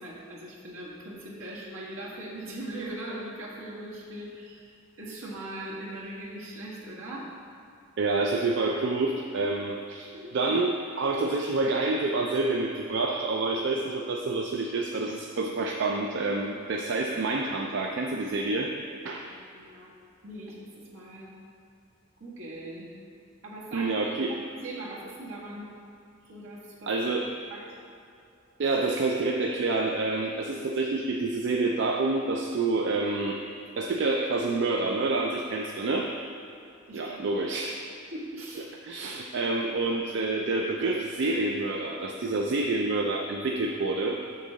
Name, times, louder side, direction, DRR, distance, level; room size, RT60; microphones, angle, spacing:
voice 1, 0.0-7.3 10.1-10.3 19.1-19.9 20.2-21.3 22.2-22.9 23.4-25.7 26.3-26.9 27.5-27.6 36.9-37.4 38.1-38.7, right 1 dB, 80° right, -5 dB, 1.7 m, -40 dB
voice 2, 8.0-18.7 19.0-19.3 23.7-24.4 26.9-27.3 28.6-33.4 33.8-36.1 36.9-37.8 38.8-44.2, right 3 dB, 60° right, 2 dB, 0.4 m, -28 dB
7.4 x 6.5 x 3.9 m, 2.5 s
head